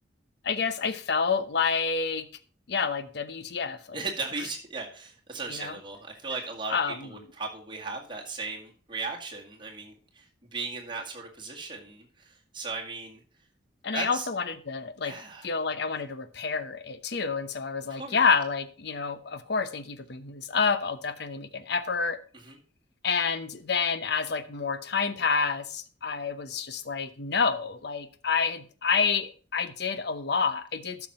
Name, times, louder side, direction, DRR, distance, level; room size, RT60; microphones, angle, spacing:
voice 1, 0.4-2.3 2.7-4.0 5.5-5.7 6.7-7.1 13.8-15.1 15.4-22.2 23.0-31.1, left 5 dB, 60° left, 0.8 m, -28 dB
voice 2, 3.9-13.2 13.9-14.3 15.0-15.5 17.9-18.2 22.3-22.6, right 4 dB, 25° right, 2.0 m, -37 dB
13.0 x 6.0 x 4.3 m
head